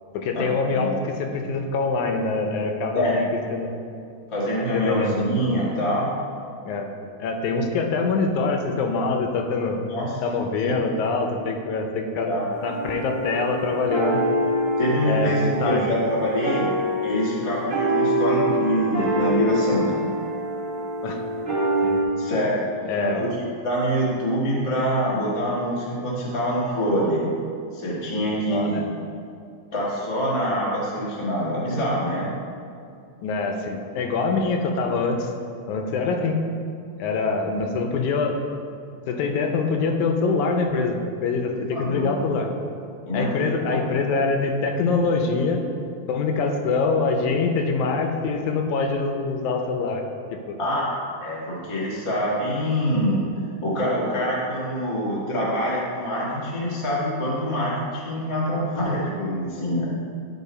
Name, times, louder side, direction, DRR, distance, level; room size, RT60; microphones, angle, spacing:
voice 1, 0.1-3.3 3.5-3.7 4.7-5.4 6.7-6.9 7.2-9.8 10.2-12.3 12.6-14.2 15.1-15.9 21.0-21.2 21.8-22.0 22.9-23.3 28.5-28.8 33.2-35.3 35.7-36.5 37.0-38.4 39.1-41.0 41.2-42.5 43.1-45.6 46.1-50.0 50.3-50.6, left 4 dB, 80° left, 4 dB, 2.0 m, -24 dB
voice 2, 4.3-6.1 9.9-10.1 12.3-12.4 14.8-16.7 17.0-20.0 22.2-22.7 22.9-23.3 23.6-27.3 27.7-28.8 29.7-32.3 41.7-42.1 43.1-43.4 43.7-43.8 50.6-50.9 51.2-53.3 53.6-59.9, equal, 50° left, -6 dB, 0.3 m, -25 dB
sound 1, 12.5-22.0, right 1 dB, 40° right, 1.5 m, -25 dB
10.5 x 4.1 x 4.2 m, 2.4 s
omnidirectional pair, 3.5 m